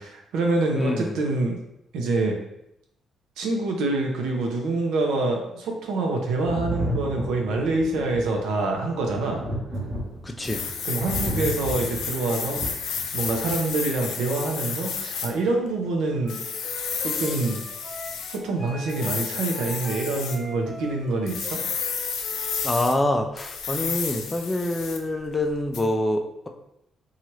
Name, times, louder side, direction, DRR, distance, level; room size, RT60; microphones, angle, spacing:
voice 1, 0.0-1.6 1.9-2.4 3.4-9.4 10.8-12.6 13.1-16.4 17.0-17.6 18.3-21.6, right 2 dB, 85° right, 1 dB, 0.6 m, -26 dB
voice 2, 0.7-1.2 10.2-10.6 22.6-26.5, left 1 dB, 20° left, 4 dB, 0.4 m, -26 dB
Thunder, 6.4-13.8 14.9-15.0, equal, 45° right, 1.0 m, -33 dB
sound 1, 10.4-15.3 16.3-18.4 18.9-20.4 21.3-22.9 23.4-25.1 25.7-25.8, left 6 dB, 80° left, 0.4 m, -31 dB
Wind instrument woodwind instrument, 16.2-22.7, equal, 15° right, 0.7 m, -42 dB
2.9 x 2.4 x 3.1 m, 0.81 s
cardioid pair, 90°, 0 cm